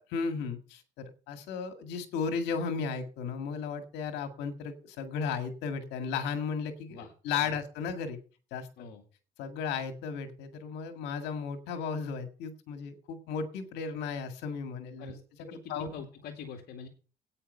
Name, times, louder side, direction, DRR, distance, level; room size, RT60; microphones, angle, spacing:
voice 1, 0.1-8.2 8.5-8.7 9.4-15.1 15.7-15.9, left 5 dB, 90° left, 8 dB, 1.9 m, -35 dB
voice 2, 15.5-16.9, left 6 dB, 70° left, 2 dB, 2.2 m, -44 dB
9.9 x 8.9 x 5.6 m, 0.37 s
cardioid pair, 110°, 17 cm